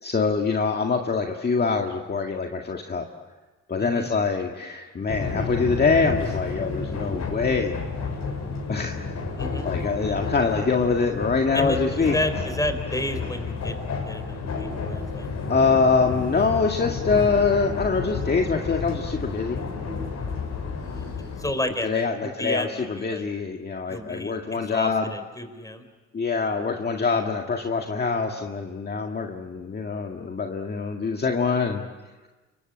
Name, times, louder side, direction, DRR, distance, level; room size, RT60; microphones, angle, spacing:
voice 1, 0.0-3.1 3.7-7.8 8.7-9.0 9.6-12.2 15.5-19.6 21.8-25.1 26.1-31.8, left 4 dB, 35° left, 2 dB, 2.0 m, -24 dB
sound 1, 5.1-21.5, left 4 dB, 65° left, 7.3 m, -31 dB
voice 2, 9.4-9.7 11.5-15.3 20.8-21.1 21.4-22.0 22.4-23.2 23.9-25.8, left 1 dB, 10° left, 9 dB, 4.4 m, -31 dB
28.0 x 23.5 x 8.8 m, 1.2 s
cardioid pair, 90°, 30 cm